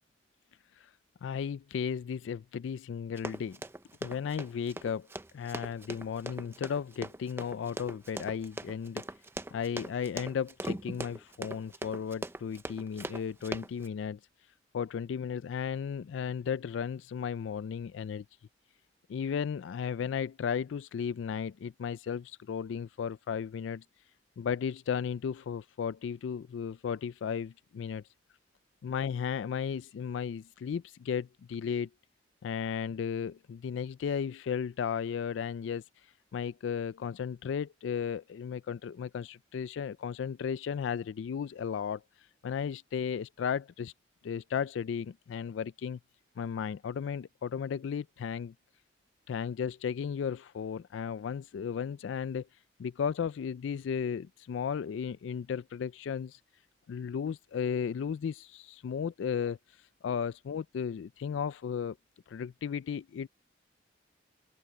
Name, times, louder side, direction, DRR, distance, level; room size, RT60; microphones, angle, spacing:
voice 1, 1.2-3.6 4.0-5.1 5.3-9.0 9.5-14.2 14.7-18.2 19.1-23.8 24.4-28.0 28.8-31.9 32.4-35.8 36.3-42.0 42.4-43.9 44.2-46.0 46.4-48.5 49.3-52.5 52.8-56.4 56.9-59.6 60.0-62.0 62.3-63.3, left 7 dB, 75° left, 0.3 m, -34 dB
Run, 3.2-13.9, right 1 dB, 10° right, 0.5 m, -40 dB
open air
head